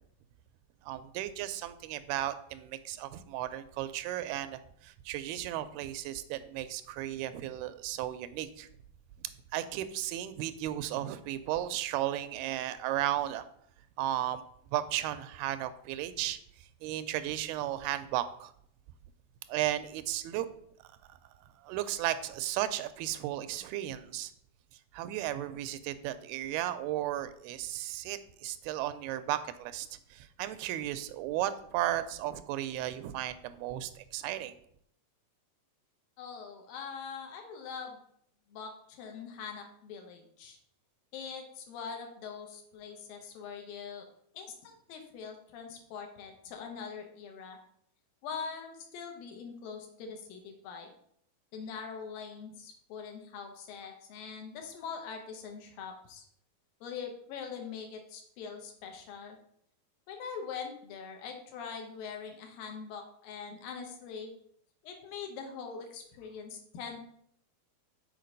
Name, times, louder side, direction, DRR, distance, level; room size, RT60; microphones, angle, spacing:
voice 1, 0.8-8.7 9.5-13.5 14.0-14.4 14.7-16.4 16.8-18.5 19.5-20.5 21.1-21.2 21.6-24.3 24.9-34.5, right 13 dB, 85° right, 12 dB, 2.5 m, -34 dB
voice 2, 36.2-38.0 38.5-40.6 41.1-44.1 44.3-47.6 48.2-50.9 51.5-56.2 56.8-59.4 60.1-64.3 64.8-67.0, left 6 dB, 75° left, 3 dB, 2.6 m, -43 dB
6.6 x 4.6 x 5.2 m, 0.68 s
omnidirectional pair, 4.4 m